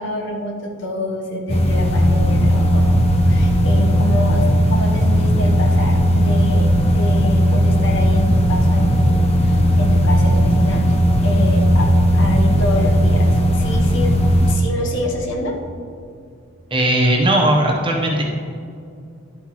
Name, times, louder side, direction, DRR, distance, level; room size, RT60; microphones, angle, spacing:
voice 1, 0.0-14.2 14.5-15.6, left 1 dB, 55° left, 1 dB, 1.1 m, -27 dB
sound 1, 1.5-14.5, equal, 30° left, 0.7 m, -16 dB
voice 2, 16.7-18.2, right 1 dB, 25° right, -1 dB, 1.0 m, -17 dB
11.5 x 7.9 x 3.2 m, 2.4 s
head